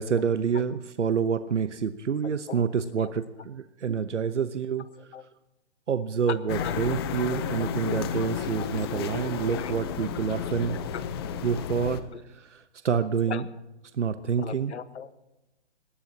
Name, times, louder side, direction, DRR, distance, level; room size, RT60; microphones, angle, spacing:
voice 1, 0.0-4.9 5.9-10.8 11.4-12.0 12.5-12.6 12.8-13.4 14.0-14.7, right 7 dB, 90° right, 11 dB, 1.0 m, -27 dB
voice 2, 2.2-2.7 2.9-3.1 5.0-5.3 6.3-7.0 7.3-7.8 8.6-9.9 10.4-10.5 10.9-11.1 11.8-12.2 13.3-13.4 14.4-15.1, left 7 dB, 70° left, 13 dB, 1.3 m, -39 dB
sound 1, 6.5-12.0, left 8 dB, 20° left, 0.7 m, -32 dB
23.5 x 18.5 x 2.9 m, 1.0 s
hypercardioid pair, 155°, 35 cm